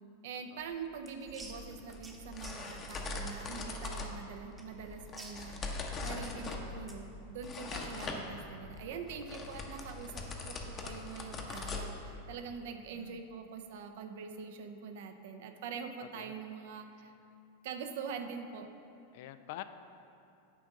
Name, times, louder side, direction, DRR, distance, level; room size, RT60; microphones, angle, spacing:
voice 1, 0.2-5.6 6.0-17.1 17.6-18.7, right 6 dB, 55° right, 6 dB, 0.6 m, -44 dB
sound 1, 0.6-7.1, right 2 dB, 15° right, 0.9 m, -54 dB
sound 2, 1.3-12.4, left 3 dB, 25° left, 0.8 m, -42 dB
voice 2, 12.9-13.2 16.0-16.3 19.1-19.6, left 15 dB, 50° left, 11 dB, 0.3 m, -46 dB
9.3 x 3.5 x 6.3 m, 2.7 s
figure-of-eight pair, 90°, 0 cm